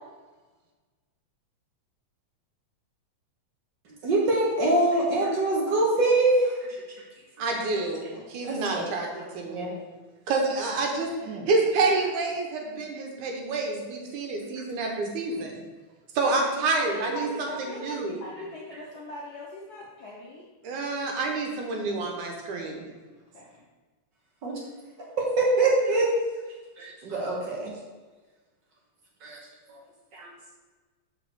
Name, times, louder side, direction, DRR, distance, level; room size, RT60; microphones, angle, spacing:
voice 1, 4.0-6.8 7.4-7.5 8.1-8.8 9.5-9.7 11.2-11.4 24.4-24.5 25.4-26.1 26.8-27.7 29.2-29.4 29.7-29.8 30.1-30.3, right 2 dB, 65° right, -2 dB, 1.1 m, -24 dB
voice 2, 7.4-9.7 10.3-11.1 11.5-15.6 16.2-18.2 20.6-22.8, right 3 dB, 85° right, 1 dB, 2.5 m, -28 dB
voice 3, 16.7-20.4 23.3-23.4, left 1 dB, 80° left, -4 dB, 0.8 m, -39 dB
5.3 x 4.6 x 6.2 m, 1.3 s
omnidirectional pair, 3.4 m